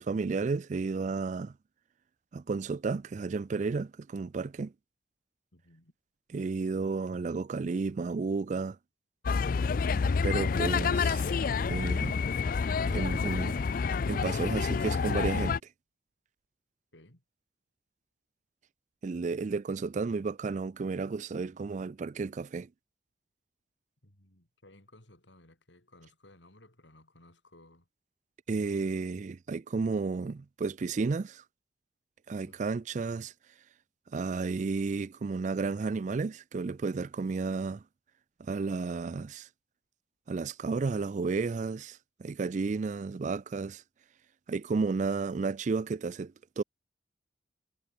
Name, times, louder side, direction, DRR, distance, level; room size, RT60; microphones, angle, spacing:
voice 1, 0.0-1.5 2.3-4.7 6.3-8.8 10.2-11.3 11.6-12.2 12.9-13.6 14.1-15.6 19.0-22.7 28.5-31.4 32.3-33.3 34.1-37.8 38.4-39.5 40.3-43.8 44.5-46.6, right 4 dB, 40° right, 0.4 m, -32 dB
voice 2, 5.5-5.9 16.9-17.2 24.0-27.9 28.7-29.0 32.4-32.8, left 1 dB, 80° left, 6.0 m, -58 dB
sound 1, 9.3-15.6, left 5 dB, 50° left, 0.4 m, -28 dB
head